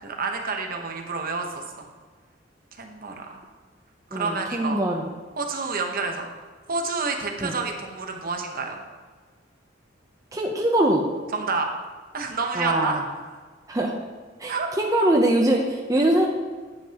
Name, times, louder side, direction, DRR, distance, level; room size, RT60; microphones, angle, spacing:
voice 1, 0.0-1.9 2.8-3.4 4.1-4.8 5.4-6.3 6.7-8.8 11.3-11.7 12.1-13.0 14.5-14.7, right 4 dB, 50° right, 3 dB, 1.0 m, -29 dB
voice 2, 4.1-5.0 7.4-7.5 10.3-11.0 12.6-13.0 13.7-13.9 14.4-16.3, right 1 dB, 20° right, 0 dB, 0.7 m, -22 dB
10.5 x 7.6 x 2.9 m, 1.4 s
head